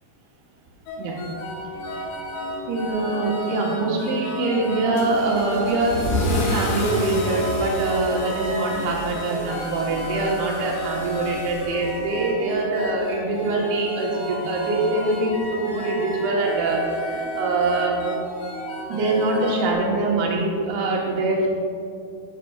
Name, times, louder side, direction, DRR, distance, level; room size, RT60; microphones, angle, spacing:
sound 1, 0.9-19.7, equal, 85° left, 4.0 m, -32 dB
voice 1, 2.7-18.1 18.9-21.5, right 2 dB, 65° right, -3 dB, 2.8 m, -24 dB
Car / Engine starting / Accelerating revving vroom, 4.9-12.3, left 1 dB, 60° left, 2.1 m, -30 dB
16.0 x 5.9 x 2.4 m, 2.4 s
omnidirectional pair, 5.5 m